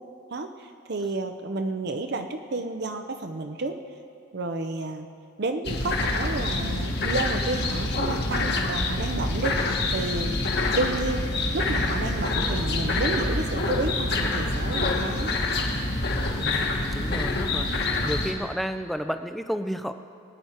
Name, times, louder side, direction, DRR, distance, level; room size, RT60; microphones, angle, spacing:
voice 1, 0.3-3.8 4.3-5.1 5.4-11.2 11.5-15.4, right 2 dB, 50° right, 6 dB, 0.6 m, -31 dB
sound 1, 5.6-18.3, left 2 dB, 50° left, 1.3 m, -26 dB
voice 2, 16.4-19.9, equal, ahead, 8 dB, 0.4 m, -32 dB
21.0 x 9.5 x 4.4 m, 2.5 s
head